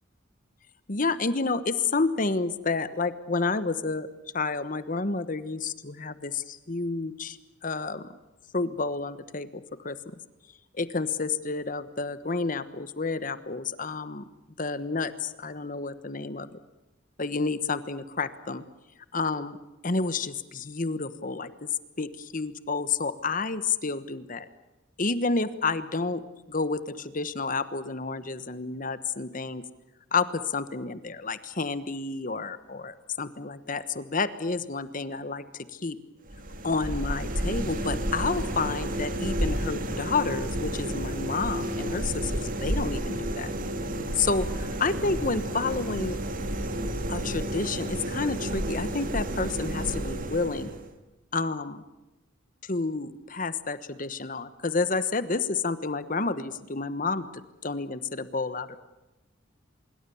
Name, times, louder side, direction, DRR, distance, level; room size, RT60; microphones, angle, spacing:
voice 1, 0.9-4.1 4.3-8.1 8.5-10.0 10.7-14.2 14.6-16.6 17.2-18.6 19.1-19.6 19.8-21.7 22.0-24.5 25.0-26.2 26.5-29.6 30.1-36.0 36.6-43.5 44.2-46.2 47.1-50.7 51.3-51.8 52.6-57.3 57.6-58.8, left 4 dB, 45° left, 13 dB, 1.2 m, -30 dB
sound 1, 36.3-50.9, right 1 dB, 45° right, 2.4 m, -31 dB
25.5 x 22.5 x 7.1 m, 1.0 s
head